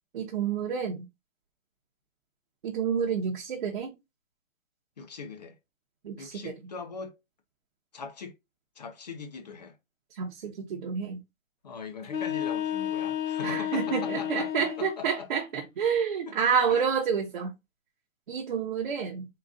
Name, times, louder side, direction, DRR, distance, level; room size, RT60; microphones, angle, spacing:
voice 1, 0.1-1.0 2.6-3.9 6.0-6.5 10.1-11.2 13.4-17.5 18.3-19.3, right 7 dB, 40° right, 0.7 m, -29 dB
voice 2, 5.0-5.6 6.2-7.1 7.9-8.3 8.8-9.8 11.6-15.3 16.7-16.9, left 5 dB, 35° left, 0.5 m, -41 dB
sound 1, 12.0-15.0, left 10 dB, 90° left, 1.1 m, -31 dB
3.9 x 2.4 x 3.5 m
hypercardioid pair, 165°, 40 cm